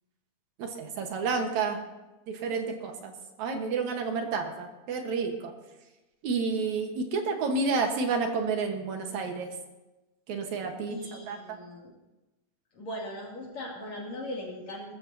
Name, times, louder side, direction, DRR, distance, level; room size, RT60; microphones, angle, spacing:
voice 1, 0.6-1.8 2.3-3.1 3.4-5.5 6.2-9.5 10.3-11.6, right 4 dB, 65° right, 4 dB, 2.7 m, -30 dB
voice 2, 10.9-11.9 12.7-14.9, left 1 dB, 60° left, -3 dB, 3.9 m, -39 dB
21.0 x 14.0 x 2.8 m, 1.1 s
omnidirectional pair, 3.6 m